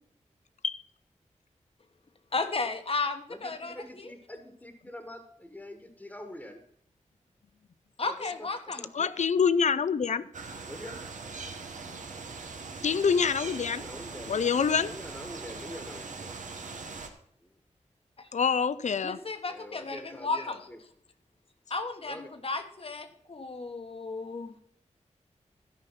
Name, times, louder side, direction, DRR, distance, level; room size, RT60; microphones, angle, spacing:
voice 1, 2.3-4.1 8.0-8.9 18.2-18.3 19.0-20.6 21.7-24.6, left 3 dB, 50° left, 8 dB, 1.3 m, -34 dB
voice 2, 3.3-6.6 8.0-8.5 8.8-9.1 10.7-11.1 13.6-14.4 14.8-16.3 17.4-17.6 19.5-20.8 22.0-22.3, left 1 dB, 10° left, 7 dB, 1.5 m, -45 dB
voice 3, 8.9-10.2 12.8-13.8 14.3-14.9 18.3-19.2, left 6 dB, 70° left, 16 dB, 0.6 m, -26 dB
sound 1, 10.3-17.1, right 4 dB, 85° right, 1.3 m, -41 dB
13.0 x 5.5 x 5.7 m, 0.68 s
wide cardioid pair, 90°, 13 cm